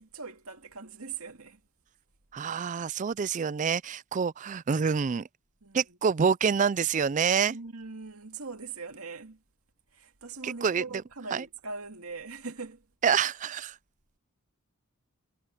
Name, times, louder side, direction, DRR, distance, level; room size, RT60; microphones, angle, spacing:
voice 1, 0.0-1.6 5.6-6.0 7.5-9.4 9.9-12.9, right 4 dB, 75° right, 2.3 m, -41 dB
voice 2, 2.3-5.3 5.7-7.6 10.4-10.8 11.3-11.4 13.0-13.8, right 6 dB, 35° right, 0.4 m, -27 dB
head